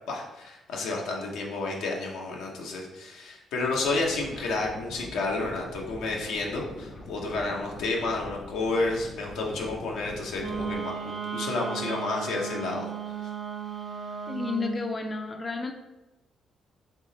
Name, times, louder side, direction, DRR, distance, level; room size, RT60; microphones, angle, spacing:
voice 1, 0.1-12.9, left 3 dB, 85° left, -1 dB, 0.8 m, -31 dB
sound 1, 3.6-10.8, left 2 dB, 55° left, 1.1 m, -44 dB
Wind instrument woodwind instrument, 10.4-14.8, right 6 dB, 40° right, 0.5 m, -35 dB
voice 2, 14.3-15.7, left 4 dB, 30° left, 4 dB, 0.4 m, -31 dB
3.5 x 2.8 x 4.0 m, 1.0 s
cardioid pair, 90°, 0 cm